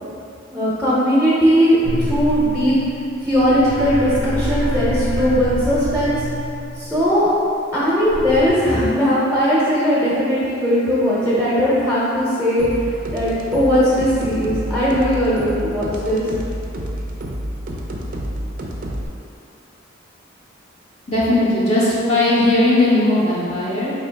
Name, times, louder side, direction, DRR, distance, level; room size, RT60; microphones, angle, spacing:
voice 1, 0.5-2.7 3.2-6.2 6.8-7.3 7.7-16.2, equal, 5° right, -9 dB, 0.7 m, -18 dB
sound 1, 1.8-7.1 8.1-8.5, equal, 90° left, 0.7 m, -26 dB
sound 2, 12.6-19.1, equal, 45° right, 0.4 m, -29 dB
voice 2, 21.1-23.9, left 1 dB, 35° left, -9 dB, 0.6 m, -17 dB
3.8 x 3.0 x 3.4 m, 2.6 s
head